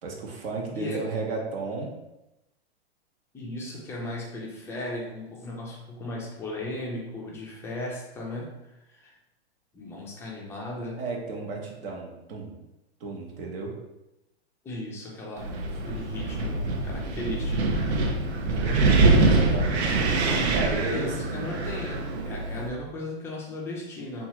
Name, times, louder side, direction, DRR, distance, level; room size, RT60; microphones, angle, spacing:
voice 1, 0.0-1.9 11.0-12.6 13.0-13.7 19.1-20.0 20.5-21.5, right 3 dB, 60° right, -1 dB, 0.9 m, -33 dB
voice 2, 0.7-1.1 3.3-9.1 9.7-11.0 14.6-15.5 15.9-17.7 20.9-24.3, left 1 dB, 10° left, -3 dB, 0.3 m, -36 dB
Wind, 15.4-22.7, right 3 dB, 90° right, 0.6 m, -24 dB
2.9 x 2.3 x 2.9 m, 0.94 s
hypercardioid pair, 130°, 32 cm